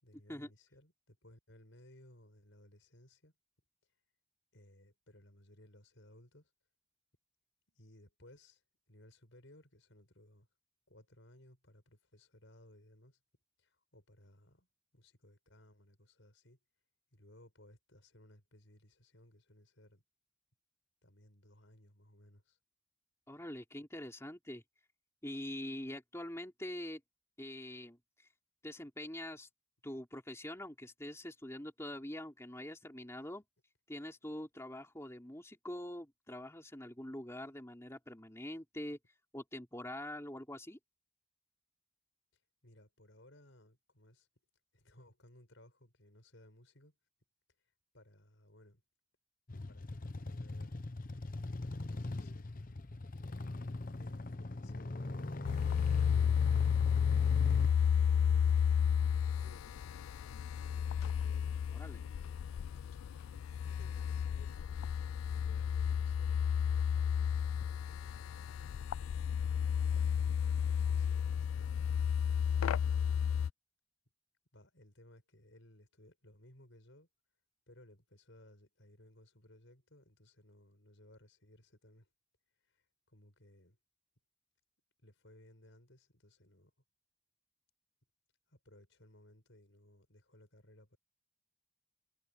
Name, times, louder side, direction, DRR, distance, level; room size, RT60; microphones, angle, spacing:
voice 1, 0.0-3.3 4.5-6.5 7.7-8.6 8.9-10.5 10.9-13.2 13.6-14.7 14.9-16.6 17.1-20.0 21.0-22.6 42.6-44.3 44.7-47.0 47.9-48.8 49.7-50.9 51.8-52.5 53.9-55.8 56.7-58.7 59.2-60.1 61.0-62.6 63.6-64.7 65.2-68.7 70.0-73.5 74.5-77.1 77.7-82.1 82.6-83.8 85.0-86.7 88.5-91.0, left 1 dB, 65° left, 5.9 m, -61 dB
voice 2, 23.3-24.6 25.2-27.0 27.4-28.3 28.6-29.5 29.8-33.4 33.9-39.0 39.3-40.8 61.7-62.0, left 1 dB, 15° left, 3.3 m, -44 dB
sound 1, 49.5-57.7, left 2 dB, 40° left, 0.8 m, -41 dB
sound 2, 55.4-73.5, left 7 dB, 85° left, 0.3 m, -32 dB
head